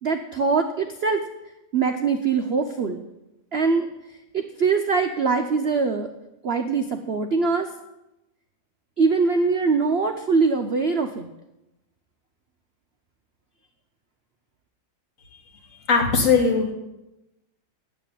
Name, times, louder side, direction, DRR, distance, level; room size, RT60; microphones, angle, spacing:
voice 1, 0.0-1.2 1.7-3.0 3.5-3.9 4.3-6.1 6.4-7.7 9.0-11.3, right 4 dB, 55° right, 5 dB, 0.7 m, -22 dB
voice 2, 15.9-16.7, left 5 dB, 45° left, 3 dB, 2.2 m, -19 dB
9.7 x 8.1 x 9.1 m, 0.93 s
omnidirectional pair, 2.0 m